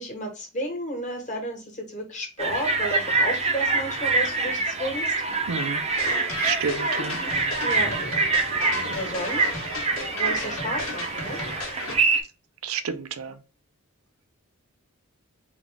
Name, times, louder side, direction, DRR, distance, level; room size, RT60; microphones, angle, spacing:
voice 1, 0.0-5.1 7.6-8.0 8.8-9.7 10.1-11.4, equal, 35° left, 1.4 m, -32 dB
sound 1, 2.4-12.2, right 3 dB, 30° right, 0.6 m, -25 dB
voice 2, 5.5-5.8 6.4-7.2 12.6-13.4, right 6 dB, 80° right, 0.5 m, -30 dB
sound 2, 6.0-12.0, left 2 dB, 80° left, 1.3 m, -34 dB
3.9 x 2.4 x 3.4 m
head